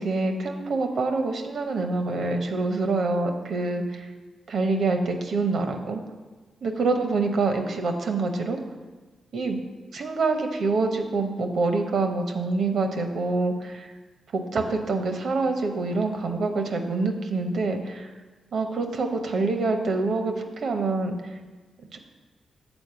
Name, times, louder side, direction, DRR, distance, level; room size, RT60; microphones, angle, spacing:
voice 1, 0.0-4.1 4.5-6.0 6.6-8.6 9.3-9.6 9.9-13.9 14.3-18.1 18.5-21.2 21.9-22.0, right 3 dB, 65° right, 5 dB, 0.9 m, -26 dB
7.2 x 4.4 x 6.8 m, 1.3 s
supercardioid pair, 45°, 0 cm